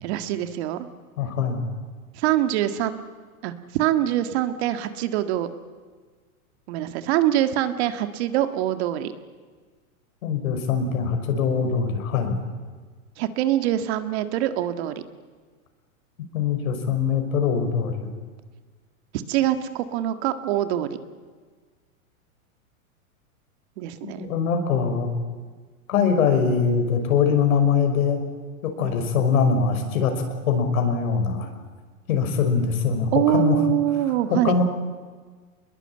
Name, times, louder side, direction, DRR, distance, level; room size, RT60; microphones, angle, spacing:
voice 1, 0.0-0.9 2.1-3.0 3.4-5.5 6.7-9.1 13.2-15.0 19.3-20.9 23.8-24.3 28.8-29.0 33.1-34.6, right 12 dB, 50° right, 10 dB, 1.8 m, -24 dB
voice 2, 1.2-1.7 10.2-12.4 16.3-18.1 24.2-25.1 25.9-28.2 28.6-31.5 32.1-33.6 34.3-34.6, left 6 dB, 70° left, 5 dB, 5.9 m, -22 dB
25.5 x 21.5 x 8.9 m, 1.5 s
hypercardioid pair, 145°, 43 cm